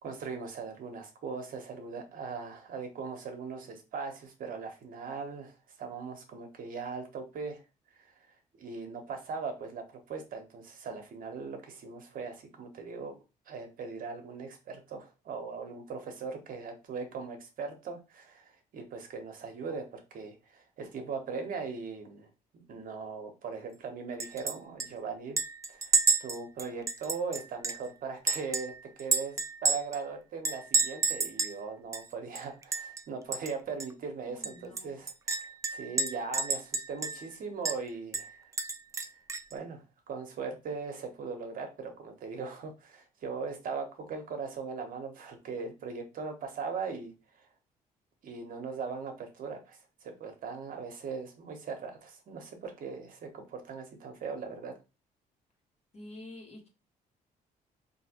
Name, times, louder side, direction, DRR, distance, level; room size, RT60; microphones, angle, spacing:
voice 1, 0.0-7.6 7.9-8.1 8.6-13.1 13.5-22.3 22.5-25.4 25.7-38.5 39.5-47.5 48.2-54.8, right 5 dB, 60° right, 4 dB, 0.9 m, -39 dB
Chink clink, 24.2-24.5 24.8-24.9 25.4-27.9 28.3-30.0 30.4-31.6 31.9-32.0 32.4-33.0 33.3-33.5 33.8-33.9 34.4-37.3 37.7-37.8 38.1-39.5, right 3 dB, 20° right, 0.3 m, -30 dB
voice 2, 34.3-35.0 55.9-56.7, left 1 dB, 40° left, 1 dB, 1.3 m, -48 dB
3.1 x 2.7 x 2.9 m, 0.29 s
cardioid pair, 85°, 16 cm